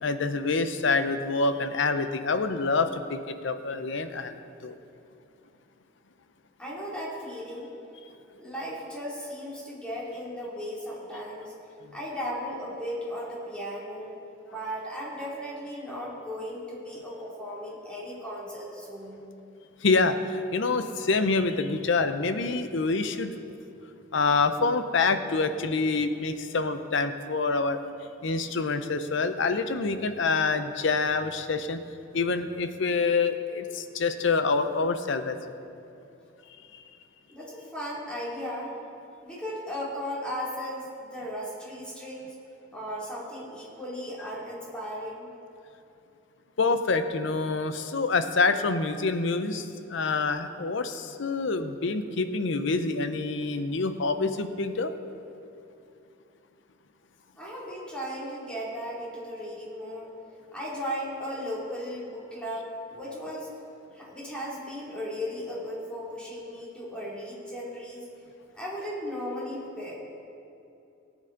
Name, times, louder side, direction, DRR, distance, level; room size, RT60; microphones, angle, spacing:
voice 1, 0.0-4.3 4.6-4.7 11.8-11.9 19.8-23.3 24.1-27.8 28.2-31.8 32.1-35.4 46.6-54.9, left 4 dB, 65° left, 9 dB, 0.7 m, -26 dB
voice 2, 6.6-7.7 8.4-11.5 11.9-14.2 14.5-19.2 37.3-38.7 39.2-42.3 42.7-45.3 57.3-60.1 60.5-63.5 63.9-68.1 68.5-69.9, equal, 5° left, -7 dB, 2.8 m, -36 dB
18.0 x 8.2 x 3.9 m, 2.8 s
head